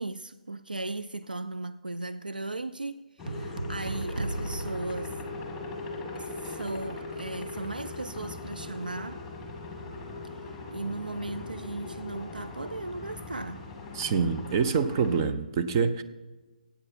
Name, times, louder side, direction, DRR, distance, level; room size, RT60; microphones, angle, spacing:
voice 1, 0.0-5.2 6.1-9.2 10.7-13.7, right 2 dB, 85° right, 0.4 m, -37 dB
sound 1, 3.2-15.2, left 3 dB, 5° left, 1.9 m, -40 dB
sound 2, 3.3-5.8, right 2 dB, 70° right, 0.8 m, -36 dB
voice 2, 13.9-16.0, right 5 dB, 30° right, 0.6 m, -26 dB
17.5 x 8.4 x 4.3 m
figure-of-eight pair, 140°, 5 cm